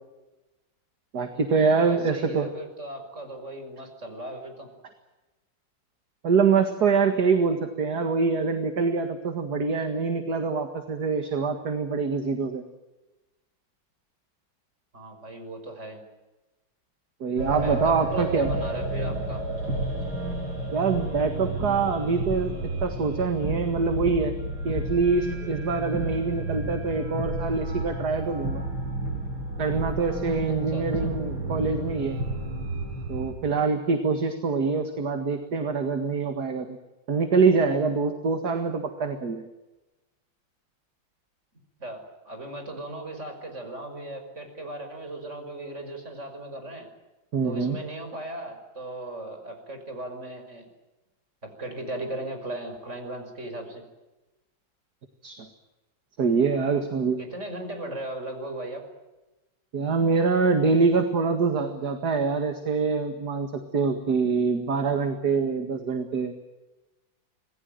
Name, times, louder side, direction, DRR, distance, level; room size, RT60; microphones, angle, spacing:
voice 1, 1.1-2.5 6.2-12.6 17.2-18.5 20.7-22.5 22.8-24.3 24.6-28.6 29.6-32.2 33.1-36.8 37.1-39.5 47.3-47.8 55.2-55.5 56.2-57.2 59.7-66.3, right 4 dB, 55° right, 6 dB, 2.3 m, -25 dB
voice 2, 1.8-4.7 14.9-16.0 17.6-19.4 30.7-31.1 41.8-46.9 47.4-50.7 51.4-53.8 57.2-58.8, right 1 dB, 35° right, 5 dB, 6.1 m, -37 dB
sound 1, 17.4-33.3, right 2 dB, 80° right, 8.8 m, -31 dB
27.0 x 20.0 x 9.3 m, 1.1 s
omnidirectional pair, 2.1 m